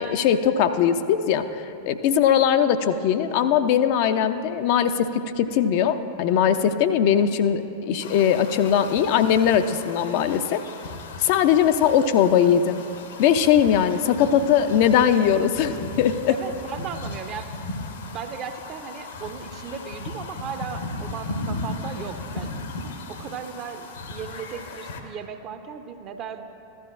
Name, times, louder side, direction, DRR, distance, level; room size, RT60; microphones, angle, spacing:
voice 1, 0.0-10.6 11.2-12.8 13.2-16.4, left 8 dB, 45° left, 9 dB, 0.4 m, -20 dB
sound 1, 8.0-25.0, left 2 dB, 60° left, 0.8 m, -36 dB
voice 2, 11.3-11.6 16.3-17.5 18.1-22.5 23.1-26.4, right 7 dB, 35° right, 8 dB, 0.6 m, -36 dB
15.0 x 12.0 x 2.5 m, 2.6 s
figure-of-eight pair, 90°, 0 cm